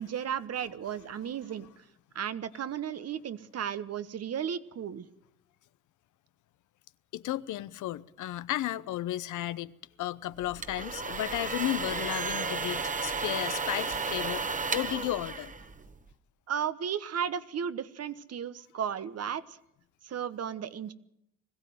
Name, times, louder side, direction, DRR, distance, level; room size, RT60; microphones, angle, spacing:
voice 1, 0.0-1.7 2.1-5.1 16.5-19.6 20.0-20.9, right 8 dB, 55° right, 1.2 m, -34 dB
voice 2, 7.1-15.5, left 14 dB, 80° left, 0.8 m, -34 dB
sound 1, 10.4-16.1, right 4 dB, 25° right, 1.3 m, -33 dB
21.0 x 15.5 x 9.4 m
cardioid pair, 90°, 30 cm